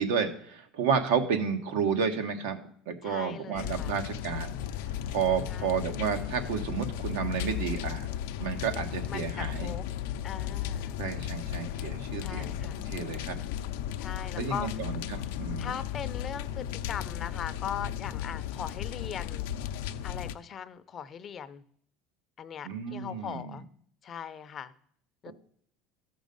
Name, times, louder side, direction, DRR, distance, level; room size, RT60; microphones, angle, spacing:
voice 1, 0.0-2.6 2.9-4.5 5.1-8.1 8.4-9.7 11.0-13.4 14.4-15.7 22.6-23.5 25.3-25.4, right 6 dB, 90° right, 6 dB, 1.4 m, -31 dB
voice 2, 3.0-3.9 5.5-5.9 9.1-9.9 10.2-11.1 12.2-12.8 14.0-14.8 15.6-19.5 20.0-21.6 22.4-23.6 24.0-24.7 25.2-25.3, left 8 dB, 30° left, 12 dB, 0.5 m, -40 dB
sound 1, 3.5-20.3, left 10 dB, 85° left, 0.5 m, -35 dB
14.0 x 6.2 x 5.3 m, 0.64 s
cardioid pair, 145°, 0 cm